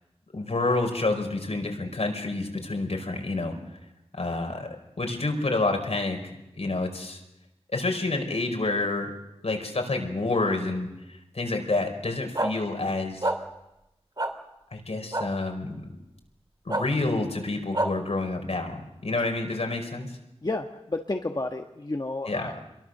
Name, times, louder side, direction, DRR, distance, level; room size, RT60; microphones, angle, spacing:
voice 1, 0.3-3.6 4.1-4.7 5.0-7.2 7.7-9.1 9.4-10.9 11.3-13.3 14.7-15.8 16.6-20.2 22.3-22.5, left 2 dB, 75° left, 4 dB, 5.0 m, -28 dB
sound 1, 12.3-12.5 13.2-13.4 14.2-14.3 15.1-15.2 16.7-16.8 17.7-17.9, right 2 dB, 40° right, 3.0 m, -25 dB
voice 2, 20.4-22.6, left 2 dB, 40° left, 3 dB, 1.4 m, -31 dB
27.5 x 22.5 x 6.8 m, 0.93 s
wide cardioid pair, 65°, 11 cm